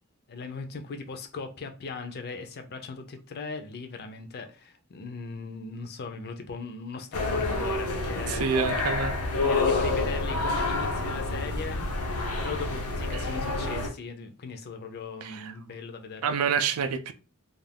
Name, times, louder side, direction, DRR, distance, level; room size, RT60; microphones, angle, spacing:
voice 1, 0.3-8.5 9.5-11.9 12.4-16.3, left 4 dB, 45° left, 0.5 m, -38 dB
sound 1, 7.1-13.9, left 2 dB, 85° left, 0.7 m, -28 dB
voice 2, 8.3-9.2 13.1-13.2 15.2-15.5 16.2-17.1, right 6 dB, 70° right, 0.4 m, -28 dB
2.4 x 2.3 x 3.3 m
head